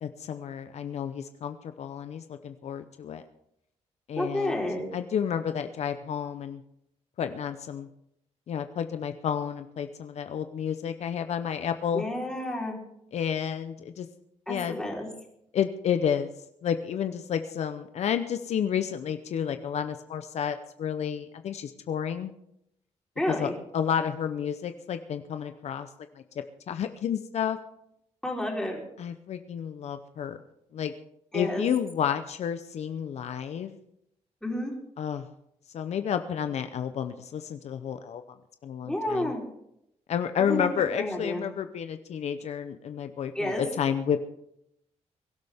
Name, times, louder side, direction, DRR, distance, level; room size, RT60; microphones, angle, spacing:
voice 1, 0.0-3.2 4.1-4.6 4.9-6.6 7.2-7.9 8.5-12.0 13.1-14.1 14.5-14.8 15.5-16.3 16.6-22.3 23.3-25.9 26.1-26.2 26.7-27.6 29.0-30.4 30.7-30.9 31.3-33.8 35.0-35.3 35.7-38.2 38.6-39.3 40.1-44.3, left 8 dB, 65° left, 9 dB, 0.8 m, -30 dB
voice 2, 4.2-4.9 11.9-12.8 14.5-15.1 23.2-23.5 28.2-28.8 31.3-31.7 34.4-34.7 38.9-39.4 40.4-40.7 41.0-41.4 43.3-43.7, left 1 dB, 5° left, -1 dB, 3.9 m, -30 dB
23.0 x 12.0 x 3.6 m, 0.78 s
cardioid pair, 120°, 12 cm